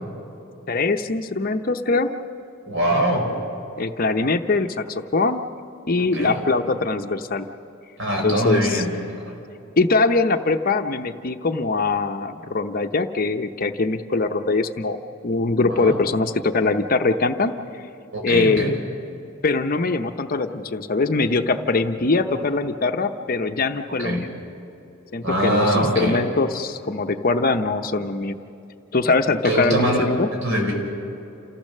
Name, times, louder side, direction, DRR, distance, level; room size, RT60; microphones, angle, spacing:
voice 1, 0.7-2.1 3.8-5.4 5.9-7.5 8.2-8.8 9.8-15.0 15.2-17.5 18.2-18.8 19.4-24.3 25.1-28.4 28.9-30.3, left 3 dB, 45° left, 7 dB, 0.7 m, -22 dB
voice 2, 2.7-3.3 6.1-6.4 8.0-8.9 9.2-9.3 15.7-16.0 18.1-18.7 24.0-24.2 25.2-26.2 29.4-30.7, right 1 dB, 65° right, 1 dB, 4.8 m, -22 dB
28.5 x 15.5 x 6.6 m, 2.8 s
head